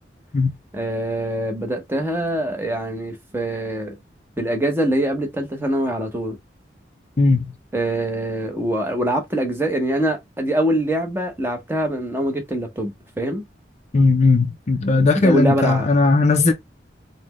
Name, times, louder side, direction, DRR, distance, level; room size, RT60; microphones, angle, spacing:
voice 1, 0.7-3.9 4.4-6.4 7.7-12.9 13.2-13.4 15.1-15.9, right 1 dB, 10° right, 0.8 m, -23 dB
voice 2, 7.2-7.5 13.9-16.5, left 3 dB, 35° left, 0.4 m, -17 dB
4.0 x 2.1 x 3.0 m
head